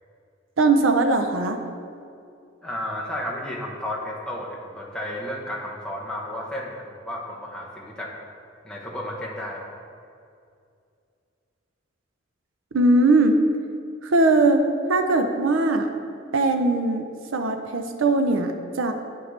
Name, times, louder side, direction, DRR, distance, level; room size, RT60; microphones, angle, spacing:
voice 1, 0.6-1.6 12.7-13.4 14.0-15.9 16.3-17.0 17.3-18.9, right 2 dB, 80° right, 6 dB, 0.6 m, -20 dB
voice 2, 2.6-8.1 8.6-9.6, left 1 dB, 5° left, -4 dB, 1.0 m, -32 dB
8.8 x 5.8 x 3.3 m, 2.4 s
head